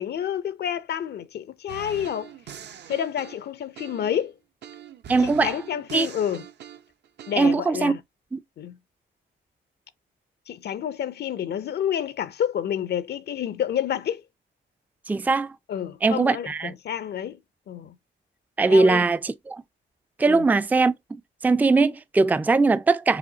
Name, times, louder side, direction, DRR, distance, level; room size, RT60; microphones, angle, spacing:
voice 1, 0.0-2.3 2.9-4.3 5.2-6.4 7.3-8.0 8.6-8.8 10.5-14.2 15.7-17.4 17.7-17.9 18.7-19.1 20.3-20.5, left 9 dB, 55° left, 0.5 m, -29 dB
sound 1, 1.7-4.2 4.6-7.4, right 9 dB, 60° right, 0.7 m, -43 dB
voice 2, 5.1-5.5 5.9-6.1 7.4-7.9 8.3-8.4 15.1-15.5 16.0-16.7 18.6-19.6 20.2-20.9 21.4-23.2, right 3 dB, 10° right, 0.4 m, -20 dB
4.9 x 3.1 x 2.8 m
cardioid pair, 90°, 20 cm